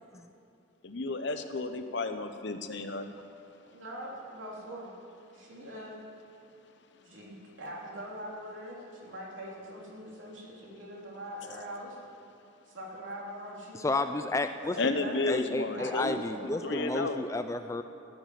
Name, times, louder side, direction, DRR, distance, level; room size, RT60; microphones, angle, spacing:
voice 1, 0.8-3.3 14.8-17.2, left 3 dB, 60° left, 8 dB, 0.9 m, -33 dB
voice 2, 3.6-4.9 5.3-6.0 7.0-12.0 12.7-14.1 14.6-15.3 15.8-17.0, equal, 70° right, -4 dB, 3.2 m, -43 dB
voice 3, 13.8-14.8 15.3-17.8, left 2 dB, 15° left, 9 dB, 0.3 m, -31 dB
15.0 x 7.1 x 9.2 m, 2.5 s
head